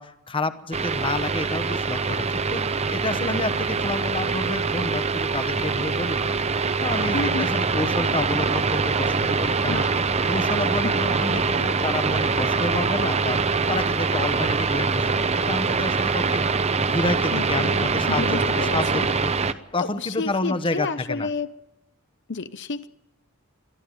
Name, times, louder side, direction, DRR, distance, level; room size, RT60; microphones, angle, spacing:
voice 1, 0.0-6.3 6.8-9.8 10.2-13.4 13.7-16.4 16.8-19.3 19.7-21.3, left 2 dB, 25° left, 12 dB, 1.0 m, -29 dB
sound 1, 0.7-19.5, right 4 dB, 30° right, 0.8 m, -24 dB
voice 2, 7.1-7.5 9.7-9.9 10.8-11.1 17.3-19.1 19.4-21.5 22.3-22.9, left 4 dB, 55° left, 12 dB, 0.8 m, -31 dB
22.5 x 13.5 x 9.2 m, 0.92 s
head